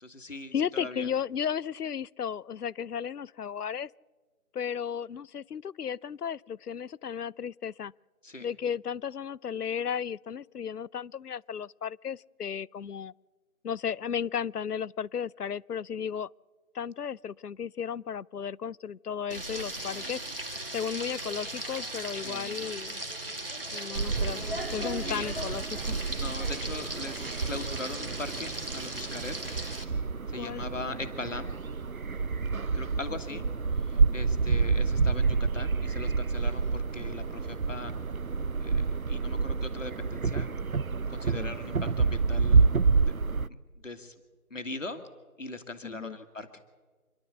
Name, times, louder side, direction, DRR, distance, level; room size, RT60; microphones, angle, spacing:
voice 1, 0.0-1.1 8.2-8.5 22.1-22.7 24.8-25.3 26.1-29.4 30.3-31.5 32.7-33.4 33.8-37.9 38.6-40.5 41.1-42.7 43.1-43.2 43.5-43.6 43.8-44.1 44.5-45.0 45.4-46.5, left 2 dB, 55° left, 1.9 m, -40 dB
voice 2, 0.5-3.9 4.5-7.9 8.4-13.1 13.6-16.3 16.7-20.2 20.7-23.0 23.7-26.1 30.3-30.6 33.1-33.4 41.4-41.5 45.8-46.2, left 7 dB, 85° left, 0.6 m, -34 dB
Frying (food), 19.3-29.8, right 1 dB, 40° right, 2.0 m, -37 dB
sound 1, 24.0-43.5, right 4 dB, 65° right, 0.7 m, -28 dB
27.5 x 11.5 x 8.1 m
figure-of-eight pair, 175°, 45 cm